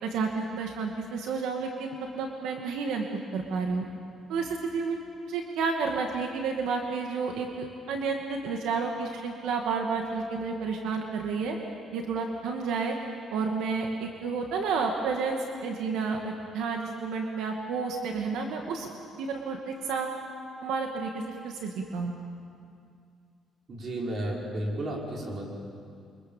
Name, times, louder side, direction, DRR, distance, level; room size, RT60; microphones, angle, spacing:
voice 1, 0.0-3.1 3.3-3.8 4.3-5.0 5.3-11.6 11.9-12.9 13.3-18.9 19.2-20.2 20.6-22.1, right 4 dB, 85° right, 2 dB, 2.3 m, -31 dB
voice 2, 23.7-25.4, right 1 dB, 40° right, -2 dB, 5.7 m, -33 dB
28.5 x 25.0 x 7.4 m, 2.3 s
cardioid pair, 130°, 0 cm